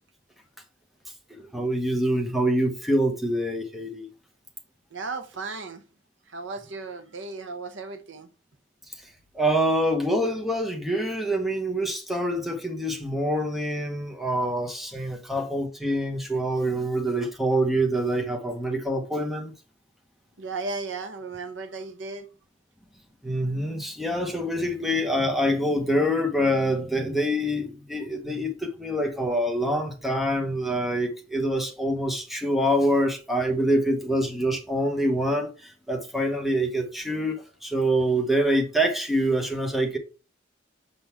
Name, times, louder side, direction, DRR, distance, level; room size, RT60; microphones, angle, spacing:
voice 1, 1.4-4.1 9.3-19.5 23.2-40.0, equal, ahead, 0.9 m, -25 dB
voice 2, 4.9-5.8 6.3-8.3 20.4-22.2, right 3 dB, 75° right, 0.8 m, -35 dB
6.7 x 3.9 x 4.4 m
head